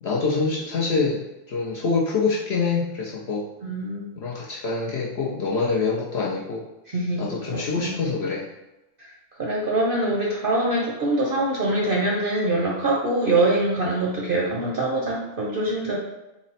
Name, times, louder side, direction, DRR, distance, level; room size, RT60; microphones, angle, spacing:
voice 1, 0.0-3.5 4.2-6.7 7.2-8.5, left 4 dB, 60° left, -4 dB, 0.7 m, -25 dB
voice 2, 3.6-4.1 6.9-8.0 9.0-9.1 9.4-16.0, right 2 dB, 50° right, -3 dB, 0.7 m, -24 dB
4.0 x 2.0 x 4.0 m, 0.96 s
omnidirectional pair, 1.5 m